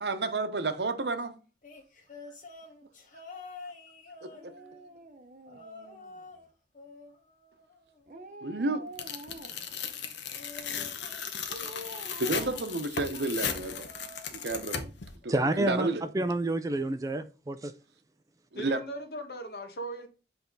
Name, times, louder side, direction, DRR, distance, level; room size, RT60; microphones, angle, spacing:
voice 1, 0.0-1.3 4.2-4.3 8.4-8.9 12.2-13.9 14.3-14.9 15.2-16.0 18.5-18.8, right 3 dB, 75° right, 0.8 m, -31 dB
sound 1, 1.6-4.9 5.5-6.5 6.7-8.3 10.3-12.5 13.4-14.9 15.2-15.6 16.7-16.8, left 3 dB, 45° left, 1.2 m, -49 dB
Dog, 4.3-6.4 8.1-9.8 11.5-13.6 13.9-14.0, right 1 dB, 45° right, 0.7 m, -47 dB
Tearing, 9.0-15.1, left 7 dB, 85° left, 0.9 m, -36 dB
voice 2, 15.3-15.9 16.1-17.7, right 2 dB, 20° right, 0.3 m, -28 dB
voice 3, 18.5-20.1, equal, 60° left, 1.2 m, -38 dB
8.0 x 3.4 x 3.9 m
head